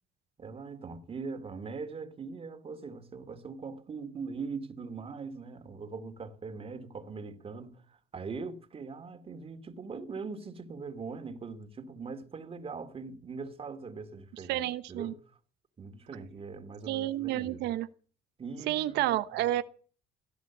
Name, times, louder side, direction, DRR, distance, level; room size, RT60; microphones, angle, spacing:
voice 1, 0.4-15.2 15.8-17.7 18.4-19.2, right 4 dB, 35° right, 2.6 m, -41 dB
voice 2, 14.5-15.1 16.9-17.9 18.7-19.6, right 14 dB, 85° right, 1.0 m, -30 dB
17.0 x 11.0 x 7.3 m
cardioid pair, 110°, 17 cm